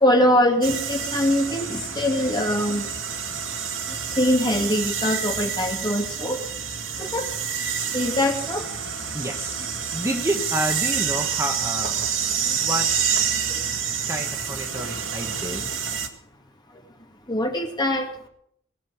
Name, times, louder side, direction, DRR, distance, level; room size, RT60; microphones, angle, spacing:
voice 1, 0.0-2.9 4.2-6.5 7.0-7.3 7.9-8.6 12.4-12.6 13.5-13.6 15.5-15.6 17.3-18.1, left 1 dB, 20° left, 2 dB, 2.3 m, -23 dB
sound 1, 0.6-16.1, right 7 dB, 80° right, 1.8 m, -28 dB
voice 2, 9.1-9.6 9.9-12.0 12.6-12.9 14.1-15.7, right 1 dB, 15° right, 4 dB, 1.1 m, -29 dB
19.5 x 6.6 x 9.6 m, 0.71 s
head